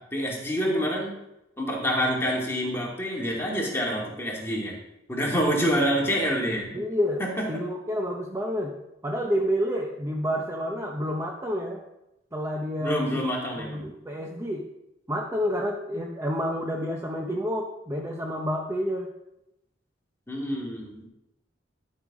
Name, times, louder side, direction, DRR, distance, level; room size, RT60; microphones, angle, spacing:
voice 1, 0.1-1.1 1.6-4.7 5.1-6.7 7.2-7.3 12.8-13.8 20.3-21.1, equal, 15° left, -3 dB, 2.4 m, -27 dB
voice 2, 6.7-7.2 7.5-8.7 9.0-11.8 12.3-13.2 13.6-14.7 15.1-19.1, equal, 15° right, 0 dB, 0.7 m, -29 dB
12.0 x 5.6 x 4.9 m, 0.88 s
head